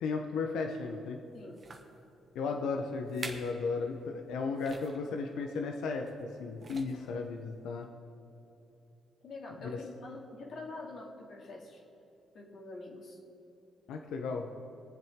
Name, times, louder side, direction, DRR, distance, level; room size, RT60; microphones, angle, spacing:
voice 1, 0.0-1.2 2.3-7.9 9.6-9.8 13.9-14.5, left 4 dB, 85° left, 3 dB, 0.8 m, -35 dB
sound 1, 0.8-1.0 1.5-2.0 2.6-2.7 3.1-3.6 3.9-4.1 4.6-5.0 6.0-6.3 6.6-7.2 7.8-7.9, right 3 dB, 40° right, 1.2 m, -46 dB
voice 2, 9.2-11.8 12.3-13.2, left 2 dB, 60° left, -1 dB, 2.3 m, -46 dB
22.0 x 7.7 x 3.7 m, 3.0 s
cardioid pair, 90°, 0 cm